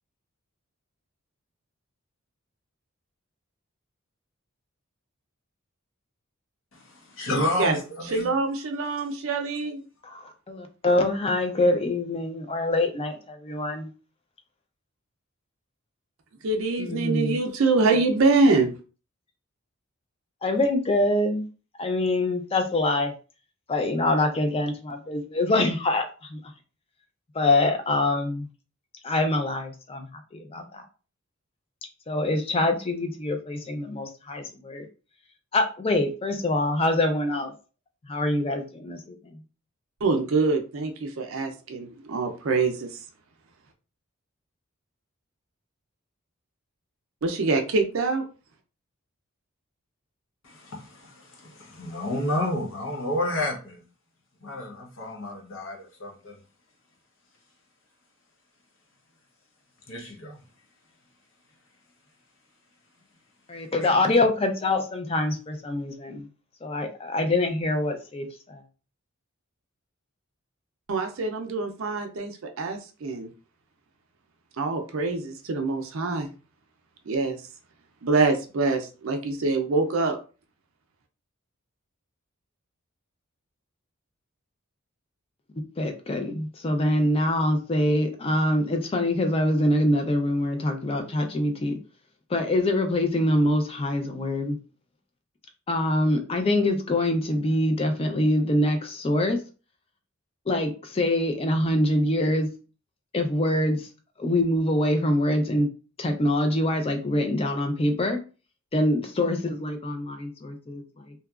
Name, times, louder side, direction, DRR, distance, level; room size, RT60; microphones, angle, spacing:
voice 1, 7.1-8.3 50.4-53.8 54.4-56.4 59.9-60.4, left 1 dB, 65° left, 0.8 m, -30 dB
voice 2, 8.1-9.8 16.4-18.7 40.0-43.0 47.2-48.2 70.9-73.3 74.6-76.3 77.1-77.4 78.0-80.2, right 3 dB, 70° right, 0.5 m, -25 dB
voice 3, 10.0-13.9 16.8-17.4 17.9-18.0 20.4-21.5 21.8-23.1 23.7-26.4 27.3-28.5 29.0-30.1 30.3-30.8 32.1-34.8 35.5-37.5 38.1-39.4 63.5-66.3 66.6-68.6 85.8-91.7 92.3-94.6 95.7-99.4 100.5-102.5 103.1-103.9 104.2-105.7 106.0-108.2 108.7-111.1, left 1 dB, 25° left, 0.4 m, -25 dB
2.8 x 2.3 x 2.3 m
head